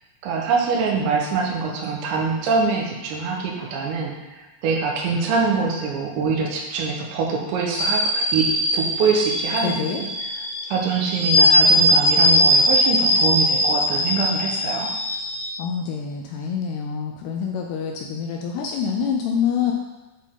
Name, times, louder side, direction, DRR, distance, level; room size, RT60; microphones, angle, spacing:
voice 1, 0.2-10.1 10.7-14.9, right 5 dB, 80° right, -1 dB, 3.3 m, -24 dB
sound 1, 7.8-15.5, equal, 65° left, 1.7 m, -20 dB
voice 2, 9.6-10.0 15.6-19.7, left 7 dB, 80° left, 1 dB, 2.4 m, -26 dB
9.7 x 4.2 x 3.8 m, 1.1 s
omnidirectional pair, 5.2 m